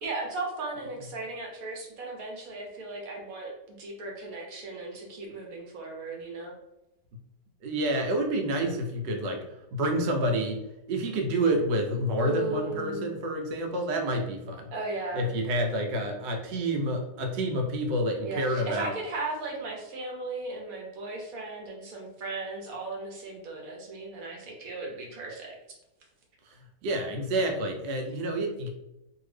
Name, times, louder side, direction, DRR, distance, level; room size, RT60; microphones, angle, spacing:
voice 1, 0.0-6.5 12.2-13.2 14.7-15.3 18.2-25.6, right 2 dB, 60° right, 0 dB, 1.1 m, -36 dB
voice 2, 7.6-9.4 9.7-10.6 10.9-14.6 15.1-18.9 26.8-28.7, right 1 dB, 90° right, 2 dB, 1.3 m, -28 dB
2.7 x 2.7 x 3.2 m, 0.92 s
omnidirectional pair, 1.9 m